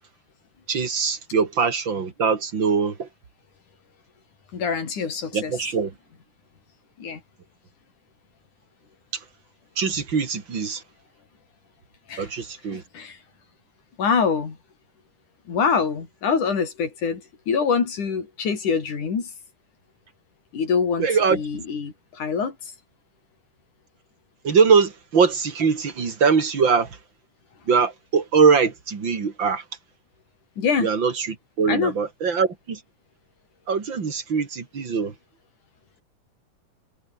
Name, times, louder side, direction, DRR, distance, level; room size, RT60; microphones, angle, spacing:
voice 1, 0.7-3.1 5.3-5.9 9.8-10.8 12.2-12.8 21.0-21.4 24.4-26.9 27.7-29.6 30.8-31.3 31.6-32.8 33.7-35.1, right 5 dB, 40° right, 3.4 m, -22 dB
voice 2, 4.5-5.6 7.0-7.2 12.1-12.3 12.7-13.2 14.0-14.6 15.5-19.3 20.5-22.6 30.6-30.9 31.7-31.9, left 5 dB, 85° left, 5.5 m, -25 dB
omnidirectional pair, 3.4 m